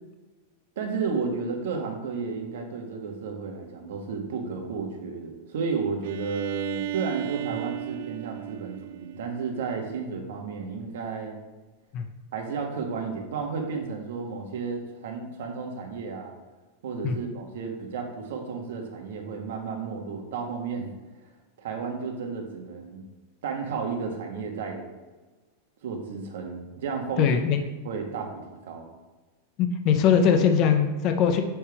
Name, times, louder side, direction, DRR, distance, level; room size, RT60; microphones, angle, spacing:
voice 1, 0.8-11.4 12.3-16.3 16.8-20.9 21.6-23.0 23.4-24.9 25.8-27.3 27.8-28.9, right 5 dB, 65° right, 2 dB, 1.2 m, -32 dB
Bowed string instrument, 6.0-9.8, right 14 dB, 50° right, 0.3 m, -35 dB
voice 2, 27.2-27.6 29.6-31.4, left 7 dB, 30° left, 6 dB, 0.5 m, -21 dB
7.1 x 3.5 x 4.6 m, 1.2 s
supercardioid pair, 180°, 0 cm